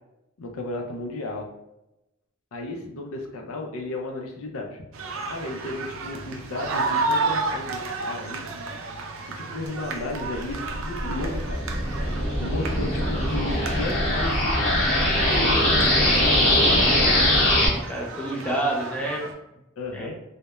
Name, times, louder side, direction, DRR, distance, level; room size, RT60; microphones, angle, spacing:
voice 1, 0.4-1.5 2.5-4.8 5.3-8.5 9.3-11.7 12.4-16.6 19.8-20.2, left 2 dB, 85° left, 3 dB, 0.5 m, -34 dB
sound 1, 4.9-19.3, right 3 dB, 70° right, 0.4 m, -32 dB
sound 2, 10.3-17.7, left 1 dB, 40° left, 1.0 m, -22 dB
voice 2, 17.4-19.2 19.9-20.1, right 1 dB, 5° left, -3 dB, 0.4 m, -29 dB
2.2 x 2.1 x 2.9 m, 0.90 s
head